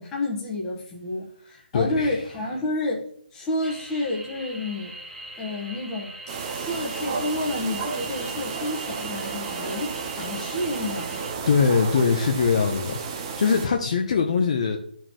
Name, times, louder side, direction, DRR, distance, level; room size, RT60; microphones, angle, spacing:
voice 1, 0.0-3.0 3.3-5.0 5.4-6.1 6.5-11.2, left 2 dB, 10° left, -3 dB, 1.2 m, -30 dB
voice 2, 1.7-2.2 9.5-9.6 11.5-13.0 13.4-14.8, left 5 dB, 40° left, 3 dB, 0.7 m, -22 dB
sound 1, 3.6-11.3, right 2 dB, 10° right, 1.2 m, -41 dB
sound 2, 6.3-13.7, right 5 dB, 25° right, 0.8 m, -32 dB
11.0 x 4.5 x 3.0 m, 0.65 s
hypercardioid pair, 165°, 6 cm